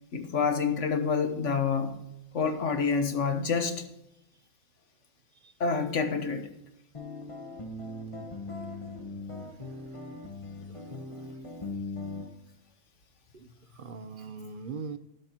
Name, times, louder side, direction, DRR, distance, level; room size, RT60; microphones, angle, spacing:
voice 1, 0.1-2.0 2.3-3.9 5.6-6.5, left 5 dB, 70° left, 1.5 m, -27 dB
sound 1, 6.9-12.3, left 2 dB, 25° left, 1.2 m, -39 dB
voice 2, 10.7-11.3 13.3-15.0, right 5 dB, 50° right, 0.8 m, -42 dB
12.0 x 11.0 x 2.9 m
omnidirectional pair, 1.3 m